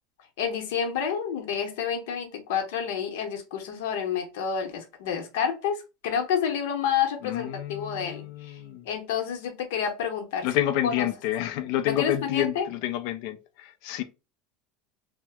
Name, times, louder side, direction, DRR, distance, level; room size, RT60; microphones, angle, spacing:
voice 1, 0.4-8.6 8.8-10.5 10.8-11.1 11.9-12.7, left 7 dB, 80° left, 0.8 m, -29 dB
voice 2, 7.2-8.9 10.4-14.0, left 13 dB, 60° left, 0.4 m, -29 dB
2.8 x 2.1 x 3.3 m
cardioid pair, 160°, 0 cm